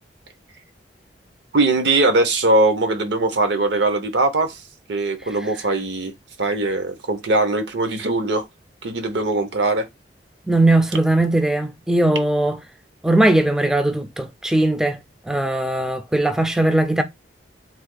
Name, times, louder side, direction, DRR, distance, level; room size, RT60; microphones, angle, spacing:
voice 1, 1.5-4.6 4.9-6.1 6.4-8.4 8.8-9.8, right 2 dB, 75° right, 0.8 m, -20 dB
voice 2, 10.5-12.6 13.0-15.0 15.3-17.0, right 1 dB, 5° right, 0.3 m, -19 dB
3.3 x 2.7 x 3.8 m
head